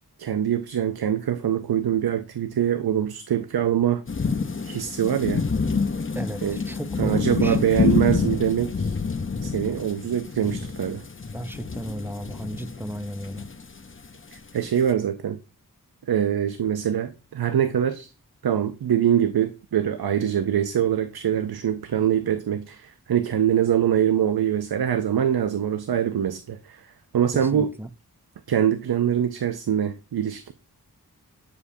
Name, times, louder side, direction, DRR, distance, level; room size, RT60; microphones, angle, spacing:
voice 1, 0.2-4.0 4.6-5.5 6.4-6.6 7.0-9.0 9.4-11.0 14.3-15.4 16.1-18.1 18.4-26.9 27.1-27.7 28.5-30.5, right 9 dB, 75° right, 0.5 m, -24 dB
sound 1, 4.1-14.9, left 4 dB, 35° left, 0.6 m, -27 dB
voice 2, 6.1-7.7 11.3-13.4 27.3-27.9, right 1 dB, 5° right, 0.4 m, -34 dB
7.9 x 5.1 x 2.6 m
wide cardioid pair, 40°, 38 cm